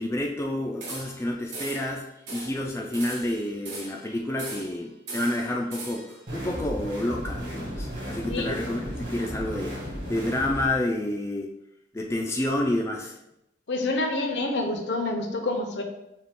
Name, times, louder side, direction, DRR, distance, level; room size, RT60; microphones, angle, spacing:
voice 1, 0.0-11.5 11.9-13.2, left 1 dB, 15° left, 0 dB, 0.3 m, -29 dB
sound 1, 0.8-1.2 1.5-1.9 2.3-2.6 2.9-4.0 4.4-4.8 5.1-6.2, right 2 dB, 65° right, 1.5 m, -38 dB
sound 2, 6.3-10.7, equal, 45° right, 1.5 m, -34 dB
voice 2, 13.7-15.8, left 2 dB, 60° left, 4 dB, 0.6 m, -27 dB
5.6 x 2.3 x 3.6 m, 0.87 s
head